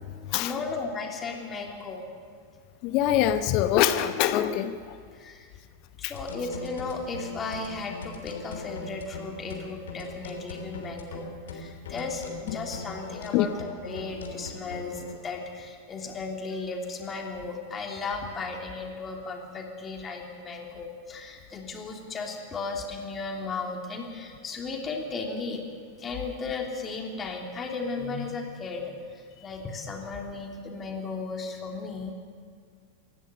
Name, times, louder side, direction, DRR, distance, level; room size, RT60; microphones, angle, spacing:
voice 1, 0.4-2.0 5.1-5.5 6.0-12.2 12.5-25.6 26.0-28.8 29.1-32.1, left 4 dB, 20° left, 2 dB, 3.1 m, -35 dB
voice 2, 2.8-5.0 6.0-6.1 13.3-13.5, left 11 dB, 40° left, 11 dB, 0.9 m, -24 dB
sound 1, 6.2-15.1, left 4 dB, 65° left, 3.3 m, -40 dB
24.5 x 17.0 x 7.0 m, 2.2 s
figure-of-eight pair, 90°, 0 cm